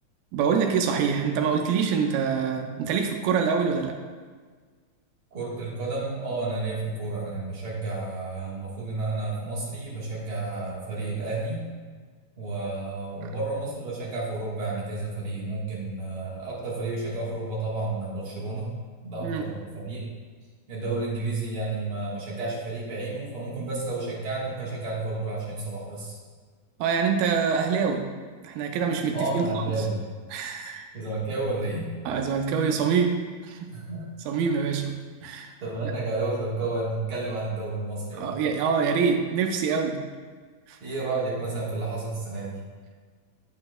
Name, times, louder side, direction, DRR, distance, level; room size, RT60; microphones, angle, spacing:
voice 1, 0.3-4.0 19.2-19.5 26.8-28.1 28.4-29.9 30.3-30.9 32.1-33.7 34.3-35.5 38.1-40.1 40.7-40.8, right 6 dB, 80° right, 3 dB, 2.2 m, -25 dB
voice 2, 5.3-11.7 12.4-18.8 19.0-20.0 20.7-26.2 29.1-30.1 30.9-31.9 33.7-34.1 34.6-34.8 35.6-38.3 40.8-42.6, right 2 dB, 60° right, -6 dB, 1.5 m, -31 dB
8.6 x 8.5 x 2.2 m, 1.5 s
omnidirectional pair, 4.4 m